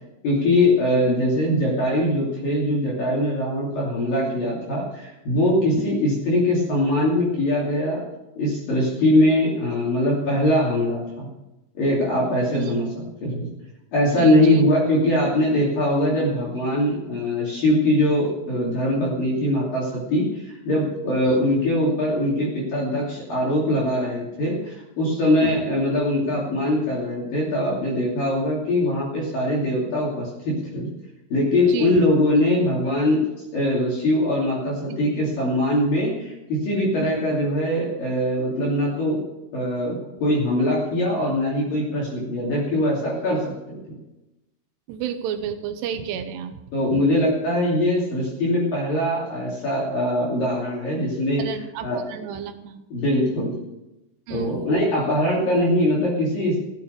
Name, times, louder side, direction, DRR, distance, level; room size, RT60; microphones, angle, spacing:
voice 1, 0.2-8.0 8.4-11.3 11.8-12.9 13.2-13.5 13.9-30.9 31.3-33.2 33.5-39.2 39.5-43.8 46.7-51.4 51.8-52.0 52.9-53.5 54.3-56.6, left 1 dB, 50° left, -5 dB, 4.1 m, -22 dB
voice 2, 14.2-14.6 21.2-21.4 25.4-25.6 31.7-32.0 32.4-32.5 34.9-35.0 37.0-37.2 44.9-46.6 51.4-52.8 54.3-54.7, right 9 dB, 75° right, 8 dB, 2.6 m, -32 dB
15.5 x 9.1 x 6.6 m, 0.97 s
omnidirectional pair, 5.8 m